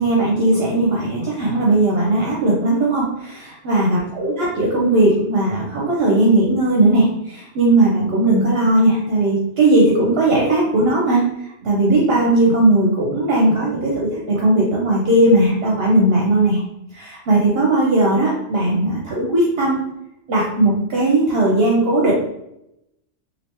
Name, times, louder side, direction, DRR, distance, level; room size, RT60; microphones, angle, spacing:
voice 1, 0.0-11.2 11.6-16.6 16.9-19.8 20.3-22.1, right 2 dB, 60° right, -3 dB, 0.8 m, -17 dB
3.2 x 2.7 x 2.9 m, 0.83 s
omnidirectional pair, 1.2 m